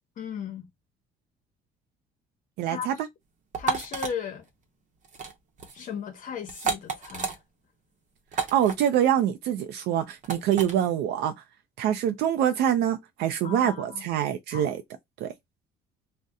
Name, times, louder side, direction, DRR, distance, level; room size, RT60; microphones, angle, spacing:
voice 1, 0.2-0.7 2.6-2.9 3.6-4.5 5.7-7.4 13.4-14.1 14.5-14.7, left 7 dB, 55° left, 0.8 m, -36 dB
voice 2, 2.6-2.9 8.3-11.3 11.8-14.8 15.2-15.3, right 10 dB, 80° right, 0.5 m, -25 dB
sound 1, 3.5-4.1 5.0-5.3 5.6-5.8 6.5-7.4 8.3-8.7 10.2-10.7, right 5 dB, 45° right, 0.8 m, -30 dB
2.7 x 2.1 x 3.5 m
cardioid pair, 110°, 17 cm